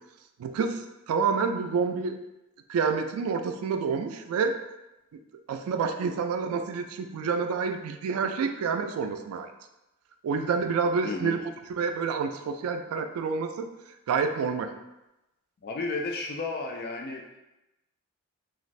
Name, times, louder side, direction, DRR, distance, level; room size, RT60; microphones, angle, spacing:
voice 1, 0.4-2.2 2.7-4.6 5.5-9.5 10.2-11.4 11.8-13.7 14.1-14.7, right 5 dB, 85° right, 7 dB, 0.3 m, -28 dB
voice 2, 11.0-11.4 15.6-17.2, left 3 dB, 45° left, 1 dB, 0.3 m, -32 dB
3.1 x 2.4 x 2.5 m, 0.95 s
head